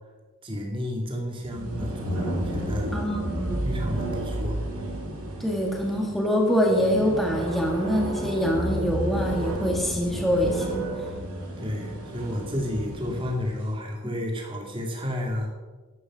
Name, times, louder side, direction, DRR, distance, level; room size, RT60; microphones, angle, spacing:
voice 1, 0.4-2.9 3.6-4.6 11.6-15.5, left 1 dB, 25° right, 0 dB, 2.3 m, -31 dB
sound 1, 1.4-13.5, right 1 dB, 90° right, 4.2 m, -31 dB
voice 2, 2.9-3.7 5.4-10.8, equal, ahead, -1 dB, 1.8 m, -25 dB
11.5 x 9.0 x 6.2 m, 1.3 s
head